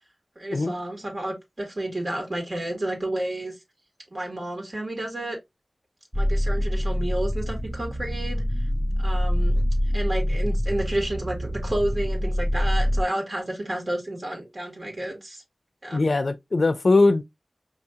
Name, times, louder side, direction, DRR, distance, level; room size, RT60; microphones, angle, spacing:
voice 1, 0.3-3.5 4.1-5.4 6.1-8.4 9.0-9.6 9.9-15.4 15.8-16.0, right 1 dB, 50° right, 1.6 m, -30 dB
sound 1, 6.1-13.0, equal, ahead, 0.4 m, -25 dB
voice 2, 15.9-17.2, left 3 dB, 65° left, 0.4 m, -20 dB
5.0 x 2.8 x 2.3 m
wide cardioid pair, 65°, 0 cm